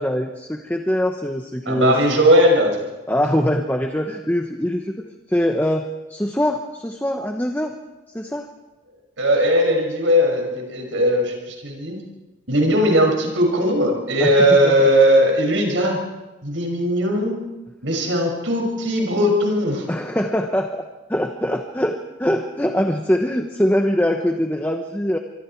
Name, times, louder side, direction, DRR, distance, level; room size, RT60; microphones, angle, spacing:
voice 1, 0.0-2.2 3.1-4.9 5.3-7.8 8.1-8.5 14.2-14.9 19.9-20.8 21.1-25.2, equal, 10° left, 4 dB, 1.0 m, -23 dB
voice 2, 1.7-2.8 9.2-12.0 12.5-16.0 16.4-17.4 17.8-19.8, equal, 85° right, 2 dB, 6.3 m, -18 dB
26.0 x 23.5 x 4.6 m, 1.1 s
head